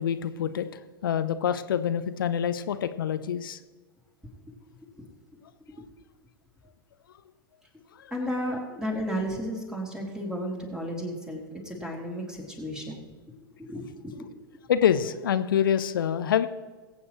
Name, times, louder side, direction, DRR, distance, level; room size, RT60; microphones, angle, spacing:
voice 1, 0.0-3.6 8.0-8.1 14.7-16.5, left 9 dB, 65° left, 12 dB, 0.7 m, -26 dB
voice 2, 8.1-13.0 13.6-14.3, equal, 5° right, 0 dB, 3.0 m, -33 dB
21.5 x 8.7 x 3.1 m, 1.3 s
figure-of-eight pair, 95°, 12 cm